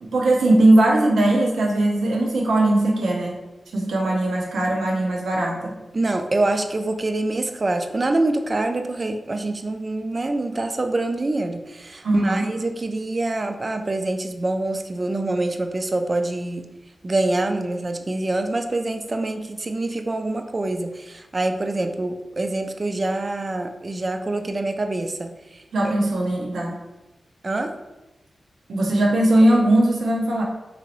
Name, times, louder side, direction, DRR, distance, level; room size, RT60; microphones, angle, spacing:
voice 1, 0.0-3.4 3.7-5.8 12.0-12.5 25.7-26.7 28.7-30.4, right 1 dB, 90° right, -1 dB, 0.6 m, -19 dB
voice 2, 5.9-16.7 17.0-25.9 27.4-27.7, right 2 dB, 40° right, 6 dB, 0.3 m, -25 dB
2.9 x 2.7 x 2.9 m, 1.0 s
cardioid pair, 65°, 0 cm